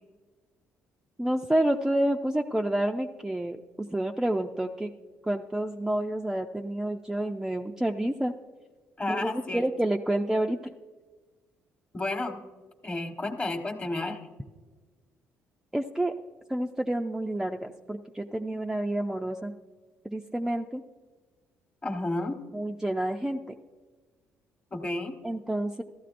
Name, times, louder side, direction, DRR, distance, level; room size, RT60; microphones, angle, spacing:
voice 1, 1.2-4.9 5.2-8.3 9.1-10.7 15.7-16.1 16.5-19.5 20.0-20.8 22.5-23.5 25.2-25.8, right 1 dB, 5° right, 2 dB, 0.5 m, -29 dB
voice 2, 9.0-9.6 11.9-12.4 12.8-14.2 21.8-22.4 24.7-25.2, left 2 dB, 25° left, 6 dB, 1.2 m, -31 dB
14.5 x 12.5 x 2.5 m, 1.3 s
supercardioid pair, 75°, 5 cm